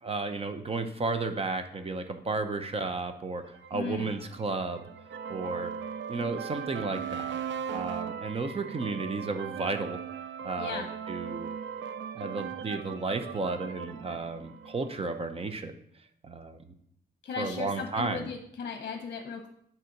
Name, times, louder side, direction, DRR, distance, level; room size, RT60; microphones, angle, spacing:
voice 1, 0.0-3.4 3.7-4.9 5.3-5.7 6.1-7.4 7.7-10.0 10.4-11.5 12.1-15.8 16.2-16.7 17.4-18.3, right 3 dB, 30° right, 8 dB, 0.7 m, -33 dB
sound 1, 3.6-15.3, right 7 dB, 80° right, 0.5 m, -39 dB
voice 2, 3.7-4.1 10.6-10.9 17.2-19.5, left 5 dB, 50° left, 5 dB, 0.8 m, -36 dB
6.6 x 4.4 x 5.8 m, 0.69 s
cardioid pair, 125°, 19 cm